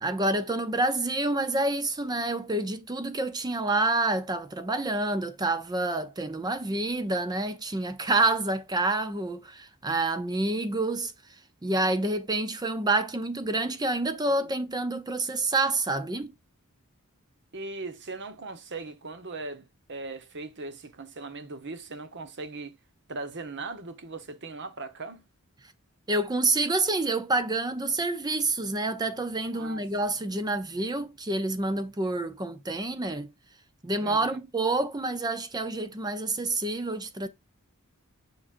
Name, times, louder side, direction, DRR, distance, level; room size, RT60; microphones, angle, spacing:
voice 1, 0.0-11.1 11.6-16.3 26.1-33.3 33.8-37.3, right 2 dB, 20° right, 0.6 m, -28 dB
voice 2, 17.5-22.8 23.1-25.2 29.5-29.8 34.0-34.4, right 3 dB, 55° right, 1.1 m, -39 dB
7.5 x 5.3 x 2.5 m
head